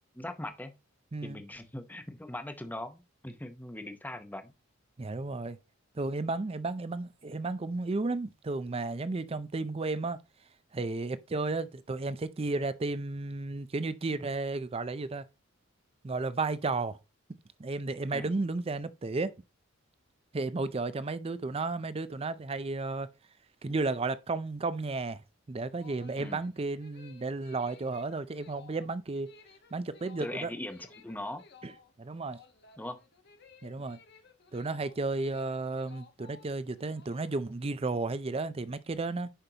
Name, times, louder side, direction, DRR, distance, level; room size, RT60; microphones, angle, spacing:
voice 1, 0.2-0.7 1.2-4.5 18.1-18.3 26.2-26.4 30.2-31.4 32.8-33.0, left 1 dB, 10° left, 0.8 m, -40 dB
voice 2, 1.1-1.4 5.0-5.6 6.0-10.2 10.7-15.3 16.0-17.0 17.6-19.3 20.3-23.1 23.6-25.2 25.5-29.3 29.7-30.5 31.6-31.7 32.0-32.4 33.6-34.0 34.5-39.3, right 3 dB, 25° right, 0.4 m, -33 dB
sound 1, 25.5-37.6, left 5 dB, 50° left, 1.1 m, -57 dB
10.0 x 5.2 x 2.8 m
head